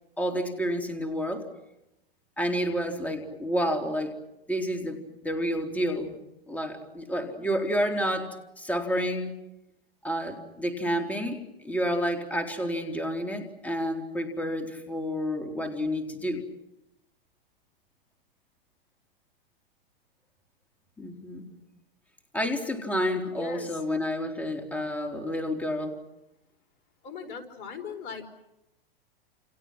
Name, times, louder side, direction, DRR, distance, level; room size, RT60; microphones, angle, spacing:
voice 1, 0.2-1.5 2.4-4.1 4.5-6.2 6.5-9.3 10.0-16.4 21.0-21.4 22.3-26.0, equal, 5° left, 4 dB, 3.8 m, -30 dB
voice 2, 23.4-23.8 27.0-28.3, left 6 dB, 40° left, 6 dB, 5.0 m, -39 dB
29.5 x 29.5 x 6.1 m, 0.92 s
hypercardioid pair, 120°, 29 cm